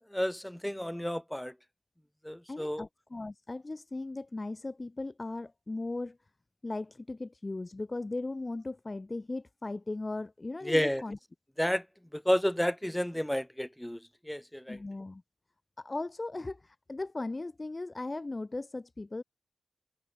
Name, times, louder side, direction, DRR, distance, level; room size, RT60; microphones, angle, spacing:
voice 1, 0.1-1.5 2.2-2.8 10.6-11.0 11.6-11.8 12.1-14.0 14.3-14.8, equal, 5° left, 0.3 m, -30 dB
voice 2, 2.5-6.2 6.6-11.2 14.7-15.2 15.8-19.2, left 2 dB, 35° left, 1.1 m, -37 dB
cardioid pair, 50°, 0 cm